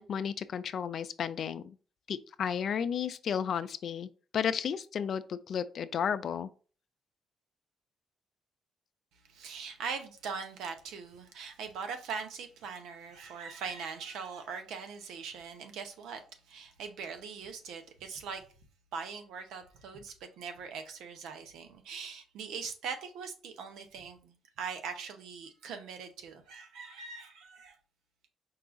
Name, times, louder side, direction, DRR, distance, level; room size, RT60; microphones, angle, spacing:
voice 1, 0.0-1.8 2.1-4.1 4.3-6.5, left 8 dB, 60° left, 0.3 m, -33 dB
voice 2, 9.3-16.2 16.5-18.4 18.9-27.8, right 5 dB, 85° right, 0.7 m, -41 dB
4.7 x 2.3 x 3.6 m
cardioid pair, 90°, 0 cm